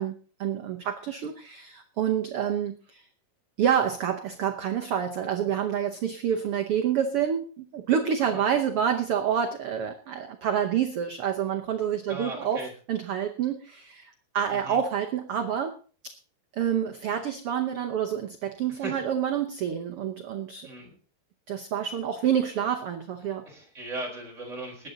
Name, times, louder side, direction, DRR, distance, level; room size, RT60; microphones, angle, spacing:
voice 1, 0.0-3.0 3.6-12.6 12.9-15.7 16.6-20.7 21.5-23.4, right 8 dB, 85° right, 5 dB, 1.2 m, -28 dB
voice 2, 12.1-12.7 14.5-14.8 18.7-19.0 20.6-21.0 23.4-24.9, right 2 dB, 20° right, 0 dB, 4.6 m, -38 dB
20.0 x 9.5 x 3.9 m, 0.39 s
omnidirectional pair, 3.9 m